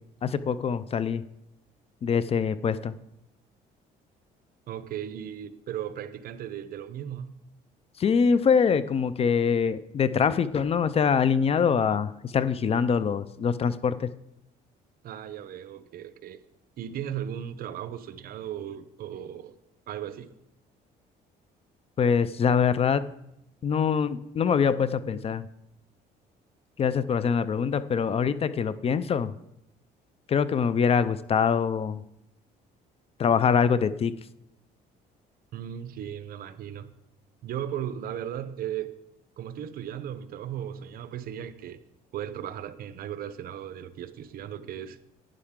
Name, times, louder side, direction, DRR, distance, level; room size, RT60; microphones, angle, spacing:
voice 1, 0.2-1.3 2.0-2.9 8.0-14.1 22.0-23.1 23.6-25.5 26.8-29.3 30.3-32.0 33.2-34.2, left 6 dB, 35° left, 0.5 m, -24 dB
voice 2, 4.7-7.3 15.0-16.4 16.8-19.6 19.9-20.3 35.5-36.9 37.4-38.9 39.4-41.8 42.1-45.0, right 10 dB, 60° right, 0.7 m, -36 dB
11.5 x 9.7 x 3.7 m
cardioid pair, 110°, 17 cm